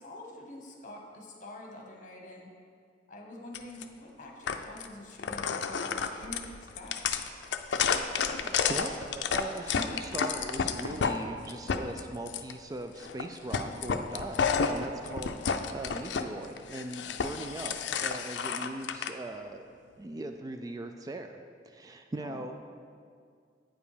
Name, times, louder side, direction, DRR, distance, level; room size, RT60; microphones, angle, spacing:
voice 1, 0.0-2.5 3.1-7.1 22.2-22.5, left 1 dB, 45° left, 1 dB, 1.2 m, -46 dB
sound 1, 3.5-3.8 4.5-4.9 5.2-11.1 11.5-12.5 13.0-13.2 13.5-16.2 16.6-19.1, left 6 dB, 85° left, 0.4 m, -30 dB
voice 2, 8.4-19.7 20.0-21.4 21.7-22.5, right 2 dB, 20° right, 6 dB, 0.3 m, -40 dB
8.8 x 5.3 x 4.9 m, 2.2 s
head